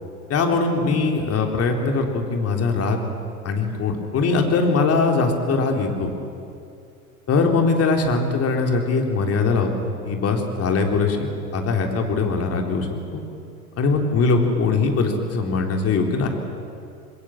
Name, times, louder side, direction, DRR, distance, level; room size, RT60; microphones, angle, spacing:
voice 1, 0.3-3.0 3.4-6.1 7.3-11.3 11.5-13.2 13.8-16.3, left 4 dB, 35° left, 3 dB, 3.7 m, -21 dB
27.5 x 21.0 x 7.8 m, 2.5 s
figure-of-eight pair, 85°, 44 cm